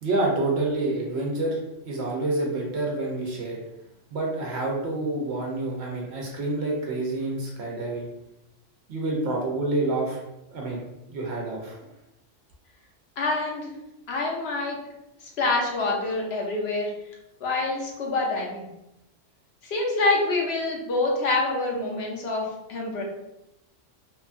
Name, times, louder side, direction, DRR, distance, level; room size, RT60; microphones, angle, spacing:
voice 1, 0.0-1.6 1.9-3.6 4.1-8.1 8.9-10.2 10.5-11.8, right 2 dB, 65° right, -1 dB, 0.8 m, -28 dB
voice 2, 13.2-13.7 14.1-14.8 15.4-16.9 17.4-18.7 19.6-23.0, left 2 dB, 60° left, -1 dB, 0.9 m, -26 dB
2.9 x 2.2 x 2.4 m, 0.89 s
omnidirectional pair, 1.3 m